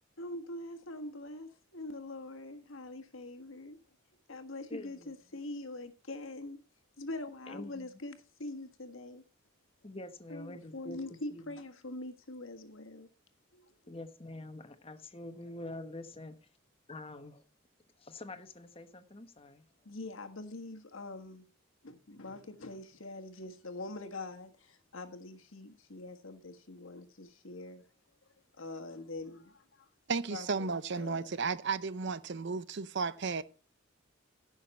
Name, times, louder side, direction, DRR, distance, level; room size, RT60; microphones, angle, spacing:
voice 1, 0.2-3.8 4.3-6.6 7.0-9.2 10.3-13.1 13.5-13.7 19.8-21.4 21.8-27.8 28.6-29.9 30.3-31.3, left 2 dB, 75° left, 1.6 m, -44 dB
voice 2, 4.7-5.1 7.5-8.0 9.8-11.0 11.3-11.5 13.9-16.4 16.9-17.4 18.0-19.7, left 2 dB, 25° left, 1.1 m, -46 dB
voice 3, 30.1-33.4, right 4 dB, 60° right, 0.7 m, -34 dB
15.0 x 6.4 x 4.3 m
head